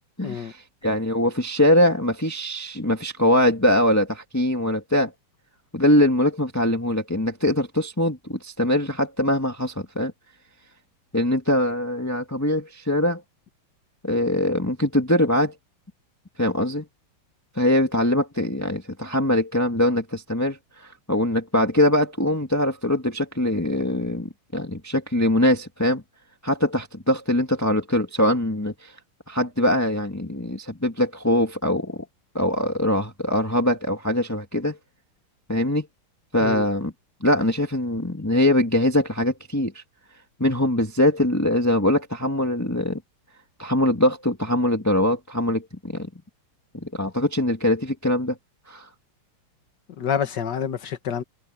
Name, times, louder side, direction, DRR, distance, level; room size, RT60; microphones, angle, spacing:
voice 1, 0.0-5.1 5.7-10.1 11.1-13.2 14.0-15.5 16.4-16.8 17.6-26.0 26.4-28.9 29.3-32.1 32.3-34.8 35.5-35.9 36.3-36.9 37.2-39.8 40.4-43.0 43.6-46.1 46.7-48.4 48.7-48.9, left 1 dB, 10° left, 1.8 m, -22 dB
voice 2, 50.0-51.2, left 8 dB, 55° left, 1.9 m, -27 dB
open air
omnidirectional pair, 2.4 m